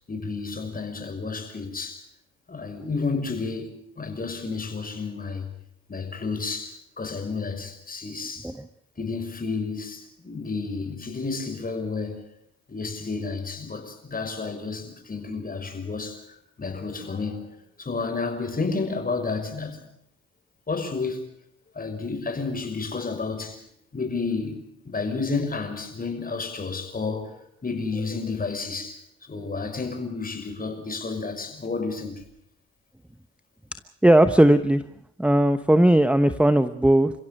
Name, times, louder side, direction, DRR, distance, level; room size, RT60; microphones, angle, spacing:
voice 1, 0.1-2.0 2.5-5.5 5.9-8.5 9.0-12.3 12.7-16.2 16.6-17.5 17.8-19.8 20.7-21.3 21.8-23.6 23.9-27.3 27.6-29.0 29.3-32.2, left 4 dB, 30° left, 6.0 m, -31 dB
voice 2, 34.0-34.8 35.2-37.1, right 1 dB, 5° right, 1.0 m, -18 dB
30.0 x 16.0 x 6.6 m
cardioid pair, 90°, 30 cm